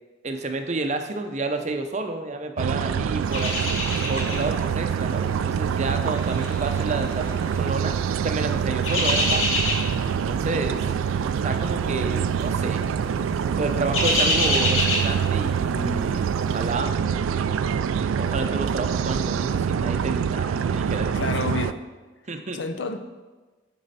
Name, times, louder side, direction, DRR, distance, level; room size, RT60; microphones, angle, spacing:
voice 1, 0.2-3.5 4.1-8.0 8.2-9.6 10.3-10.9 11.4-12.8 13.6-16.9 18.2-21.1 22.3-22.6, right 3 dB, 35° right, 6 dB, 0.6 m, -30 dB
sound 1, 2.6-21.7, right 7 dB, 85° right, 0.3 m, -25 dB
sound 2, 3.3-4.6 4.9-5.2 5.9-7.6 8.5-10.1 10.4-10.7 11.0-11.1 12.1-12.5 12.8-13.0 13.4-15.7 16.1-16.2, left 1 dB, 80° left, 1.8 m, -26 dB
voice 2, 21.1-21.8 22.5-23.0, left 3 dB, 65° left, 8 dB, 0.6 m, -29 dB
8.5 x 6.2 x 4.1 m, 1.3 s
head